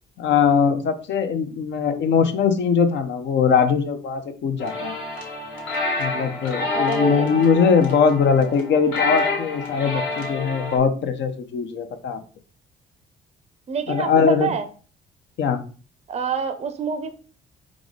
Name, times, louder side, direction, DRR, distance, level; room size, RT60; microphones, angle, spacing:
voice 1, 0.2-5.0 6.0-12.2 13.9-14.5 15.4-15.6, left 6 dB, 65° left, 7 dB, 0.6 m, -21 dB
sound 1, 4.6-10.8, left 3 dB, 85° left, 1.4 m, -28 dB
voice 2, 6.7-7.4 13.7-14.7 16.1-17.1, right 6 dB, 35° right, 9 dB, 0.5 m, -27 dB
4.8 x 2.0 x 3.8 m, 0.38 s
cardioid pair, 90°, 20 cm